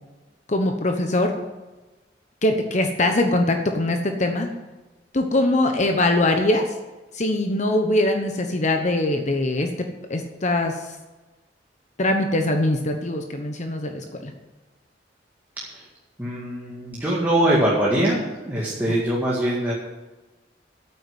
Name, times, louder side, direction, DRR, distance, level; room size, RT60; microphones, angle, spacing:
voice 1, 0.5-1.3 2.4-4.5 5.1-6.8 7.1-11.0 12.0-14.3, left 1 dB, 40° left, 5 dB, 1.0 m, -22 dB
voice 2, 16.2-19.7, right 1 dB, 10° right, -6 dB, 2.1 m, -23 dB
9.1 x 8.9 x 9.7 m, 1.1 s
head